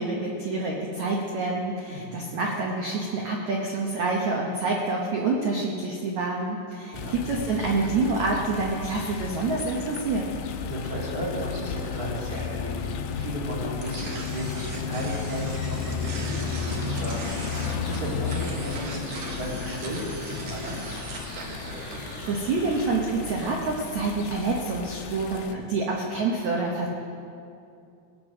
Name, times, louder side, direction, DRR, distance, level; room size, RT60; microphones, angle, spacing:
voice 1, 0.0-10.3 21.8-26.9, right 3 dB, 90° right, -1 dB, 1.6 m, -27 dB
voice 2, 1.9-2.2 6.9-7.2 10.6-20.8, equal, 25° right, -6 dB, 2.9 m, -34 dB
sound 1, 6.9-25.5, left 6 dB, 90° left, 2.0 m, -34 dB
sound 2, 9.7-20.1, left 8 dB, 5° left, 1.2 m, -42 dB
sound 3, 13.8-23.0, right 3 dB, 70° right, 1.5 m, -40 dB
19.0 x 8.4 x 6.3 m, 2.6 s
omnidirectional pair, 5.1 m